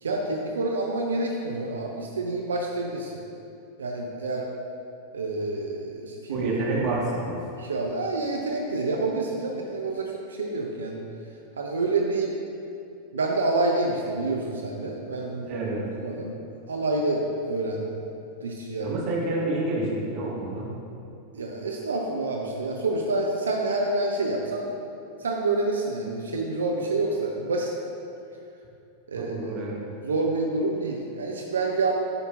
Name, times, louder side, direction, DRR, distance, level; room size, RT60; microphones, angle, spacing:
voice 1, 0.0-3.1 3.8-4.5 5.1-6.5 7.6-11.0 11.6-12.3 13.1-15.6 16.0-16.3 16.7-17.9 18.4-18.9 21.3-24.7 25.2-27.7 29.1-29.6 30.0-31.9, right 2 dB, 70° right, 0 dB, 0.5 m, -28 dB
voice 2, 6.3-7.4 15.5-15.9 18.8-20.7 29.1-29.8, right 2 dB, 35° right, -4 dB, 1.4 m, -28 dB
9.6 x 5.3 x 2.4 m, 2.6 s
figure-of-eight pair, 90°, 0 cm